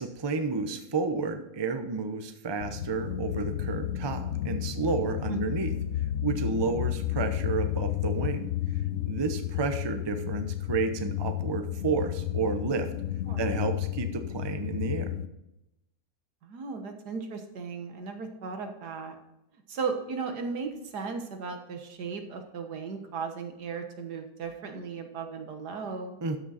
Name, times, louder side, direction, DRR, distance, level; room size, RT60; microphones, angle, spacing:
voice 1, 0.0-5.7 6.2-8.5 9.0-12.9 13.4-15.1 26.2-26.4, right 4 dB, 25° right, 7 dB, 0.6 m, -31 dB
sound 1, 2.6-15.3, left 12 dB, 70° left, 1.0 m, -32 dB
voice 2, 16.4-19.2 19.7-26.2, right 5 dB, 85° right, 5 dB, 1.8 m, -36 dB
12.5 x 6.2 x 4.2 m, 0.90 s
omnidirectional pair, 1.7 m